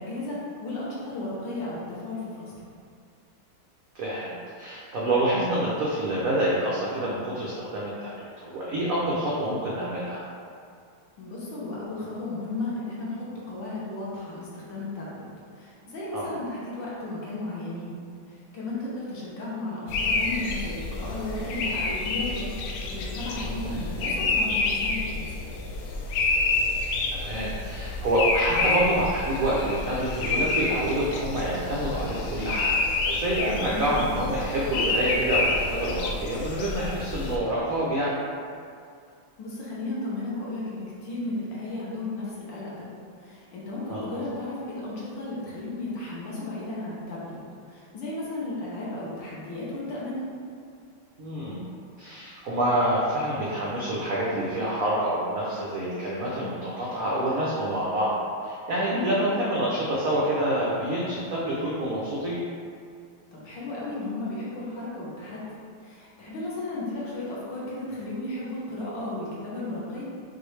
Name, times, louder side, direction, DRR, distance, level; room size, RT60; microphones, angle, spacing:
voice 1, 0.0-2.6 11.2-15.2 15.5-18.0 18.5-22.5 22.9-25.4 33.7-33.9 39.4-42.9 43.2-47.3 47.7-50.2 58.9-59.2 63.3-65.5 65.8-70.0, left 2 dB, 65° left, -7 dB, 1.6 m, -34 dB
voice 2, 3.9-10.2 16.1-16.3 23.4-23.8 27.2-32.8 33.0-38.2 43.9-44.2 51.2-51.6 52.0-62.4, right 1 dB, 85° right, -6 dB, 0.7 m, -27 dB
sound 1, 19.9-37.4, left 3 dB, 85° left, 1.4 m, -28 dB
6.0 x 2.5 x 3.2 m, 2.3 s
omnidirectional pair, 2.3 m